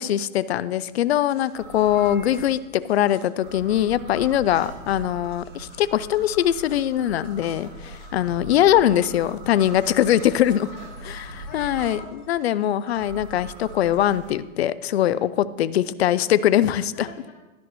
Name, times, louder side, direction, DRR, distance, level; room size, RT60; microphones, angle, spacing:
voice 1, 0.0-10.7 11.1-12.0 12.3-17.1, left 11 dB, 50° left, 17 dB, 0.4 m, -22 dB
Tick, 1.3-14.0, left 3 dB, 15° left, 2.2 m, -51 dB
sound 1, 1.5-2.4 3.4-12.0 13.0-14.3, right 1 dB, 40° right, 2.3 m, -40 dB
voice 2, 7.8-8.4 10.7-12.1 16.9-17.3, left 4 dB, 30° left, -10 dB, 3.1 m, -48 dB
12.5 x 10.0 x 3.1 m, 1.1 s
hypercardioid pair, 165°, 42 cm